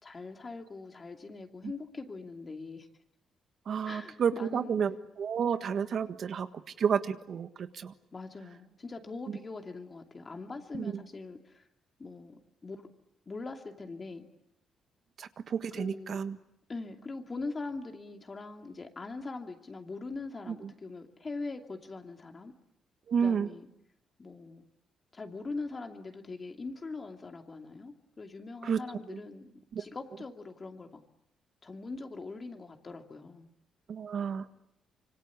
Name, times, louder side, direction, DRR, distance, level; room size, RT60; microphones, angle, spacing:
voice 1, 0.0-2.9 3.8-4.8 8.1-11.7 12.0-12.9 13.3-14.3 15.8-16.2 16.7-22.5 23.2-23.7 24.2-24.6 25.1-31.0 31.6-33.5, left 3 dB, 30° left, 4 dB, 2.7 m, -42 dB
voice 2, 3.7-6.5 6.8-7.9 10.7-10.9 15.2-16.4 20.5-20.7 23.1-23.5 28.6-28.8 29.1-29.2 29.7-29.8 33.9-34.5, right 7 dB, 55° right, 10 dB, 1.5 m, -31 dB
26.0 x 25.0 x 8.6 m, 0.78 s
cardioid pair, 115°, 0 cm